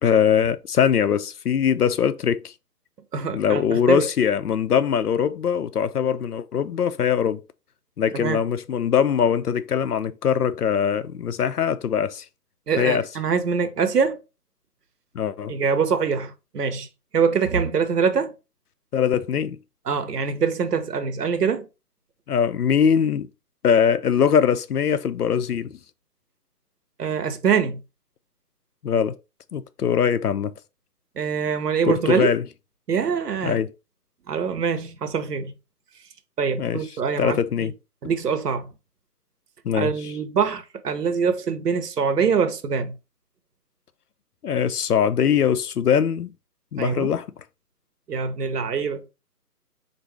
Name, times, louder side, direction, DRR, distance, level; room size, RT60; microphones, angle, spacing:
voice 1, 0.0-2.5 3.3-7.4 8.0-12.3 12.8-13.1 15.1-15.5 18.9-19.6 22.3-23.3 23.6-25.8 28.8-29.1 29.5-30.5 31.9-32.4 33.4-33.7 36.6-36.8 37.2-37.7 38.0-38.1 39.6-40.1 44.4-46.3 46.7-47.3, left 8 dB, 70° left, 0.6 m, -22 dB
voice 2, 3.1-4.1 8.1-8.4 12.7-14.2 15.5-16.9 17.1-18.3 19.9-21.7 27.0-27.8 31.2-32.3 32.9-33.6 34.3-35.5 36.4-37.7 38.0-38.7 39.7-42.9 46.8-47.1 48.1-49.1, right 6 dB, 75° right, 1.0 m, -24 dB
4.0 x 2.6 x 4.6 m
hypercardioid pair, 165°, 47 cm